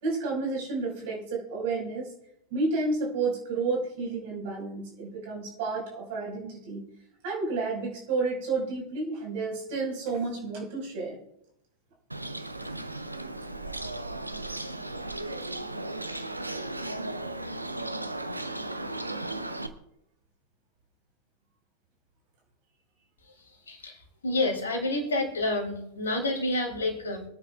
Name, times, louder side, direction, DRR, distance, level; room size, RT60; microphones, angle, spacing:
voice 1, 0.0-2.1 2.5-6.8 7.2-11.2, right 3 dB, 50° right, -1 dB, 5.4 m, -31 dB
Bird, 12.1-19.7, right 2 dB, 85° right, 0.8 m, -35 dB
voice 2, 23.7-27.2, left 2 dB, 70° left, 3 dB, 3.0 m, -29 dB
25.0 x 9.9 x 2.5 m, 0.78 s
figure-of-eight pair, 90°, 0 cm